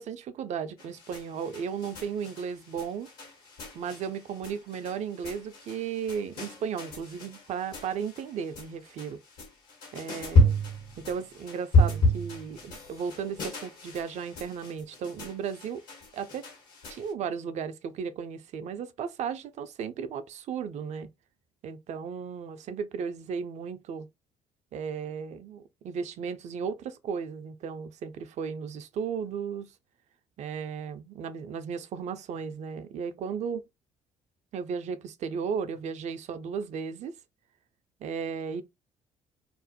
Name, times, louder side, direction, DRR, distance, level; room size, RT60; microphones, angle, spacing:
voice 1, 0.0-3.1 3.7-9.2 9.9-10.6 11.0-15.8 16.1-16.5 16.9-21.1 21.6-24.1 24.7-29.7 30.4-33.6 34.5-37.1 38.0-38.6, right 6 dB, 50° right, 0.4 m, -35 dB
sound 1, 0.8-17.1, left 1 dB, 70° left, 1.2 m, -31 dB
2.4 x 2.1 x 2.7 m
hypercardioid pair, 50°, 15 cm